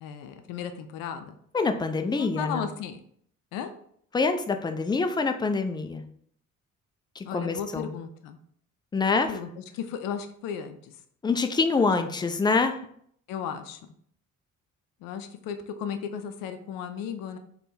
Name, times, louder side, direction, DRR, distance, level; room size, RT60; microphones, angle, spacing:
voice 1, 0.0-1.3 2.2-3.0 3.5-3.7 7.2-8.4 9.0-11.0 11.8-11.9 13.3-13.9 15.0-17.4, left 7 dB, 55° left, 7 dB, 0.5 m, -35 dB
voice 2, 1.5-2.7 4.1-6.0 7.2-7.9 8.9-9.3 11.2-12.8, left 4 dB, 10° left, 7 dB, 0.3 m, -25 dB
3.4 x 2.2 x 4.2 m, 0.63 s
figure-of-eight pair, 45°, 40 cm